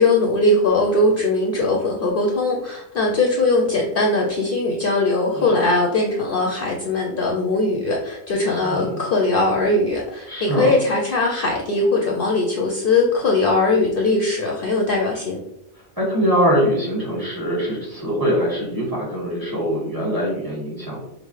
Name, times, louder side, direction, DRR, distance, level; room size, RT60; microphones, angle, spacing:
voice 1, 0.0-15.4, left 2 dB, 60° left, 0 dB, 0.6 m, -20 dB
voice 2, 8.6-9.0 10.3-10.7 16.0-21.0, equal, 20° right, -6 dB, 1.5 m, -23 dB
5.1 x 2.0 x 3.1 m, 0.84 s
omnidirectional pair, 1.2 m